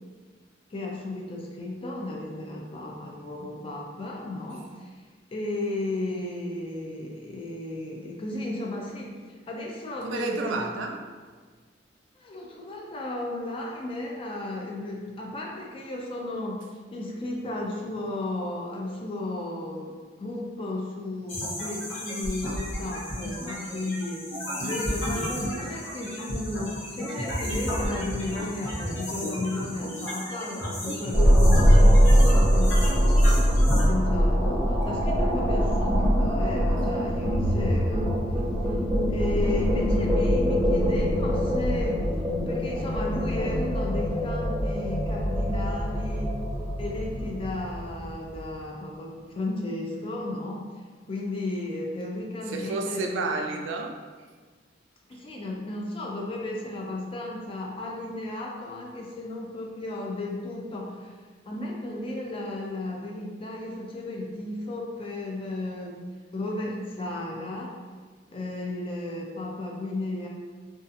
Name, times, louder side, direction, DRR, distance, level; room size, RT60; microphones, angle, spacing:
voice 1, 0.7-4.9 5.3-9.2 9.5-10.6 12.2-24.2 24.6-33.4 33.9-38.2 39.1-42.1 42.5-46.4 46.8-50.7 51.1-53.3 55.1-61.2 61.5-66.0 66.3-67.7 68.3-70.3, left 2 dB, 30° left, -1 dB, 0.4 m, -34 dB
voice 2, 10.0-11.1 24.5-24.8 52.5-54.0, right 3 dB, 75° right, 3 dB, 0.3 m, -31 dB
sound 1, 21.3-33.8, equal, 85° left, 0.8 m, -33 dB
sound 2, 31.1-48.4, equal, 10° left, 1.1 m, -22 dB
2.6 x 2.4 x 2.5 m, 1.5 s
head